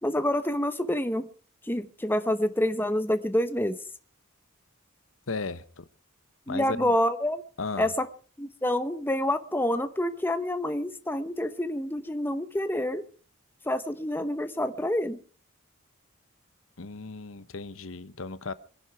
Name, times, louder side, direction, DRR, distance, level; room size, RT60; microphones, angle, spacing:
voice 1, 0.0-1.3 1.6-3.8 6.5-7.4 7.8-8.1 8.4-13.0 13.6-15.2, left 1 dB, 10° left, 0.8 m, -27 dB
voice 2, 5.3-5.9 6.5-6.9 7.6-7.9 16.8-18.5, left 3 dB, 75° left, 1.0 m, -35 dB
24.5 x 11.0 x 4.7 m
head